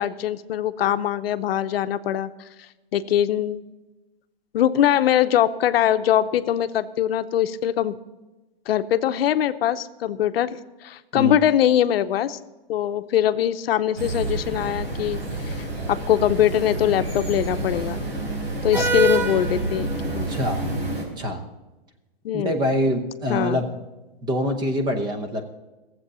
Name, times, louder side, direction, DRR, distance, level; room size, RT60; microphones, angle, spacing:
voice 1, 0.0-2.3 2.9-3.6 4.5-8.0 8.7-12.4 12.7-18.0 18.6-20.3 22.2-22.6 23.3-23.6, left 11 dB, 75° left, 11 dB, 0.7 m, -22 dB
sound 1, 14.0-21.0, right 2 dB, 80° right, 4.2 m, -27 dB
voice 2, 20.3-20.8 21.2-21.4 22.3-23.6 24.2-25.4, equal, 15° right, 6 dB, 0.8 m, -25 dB
15.0 x 7.7 x 6.8 m, 1.1 s
hypercardioid pair, 160°, 30 cm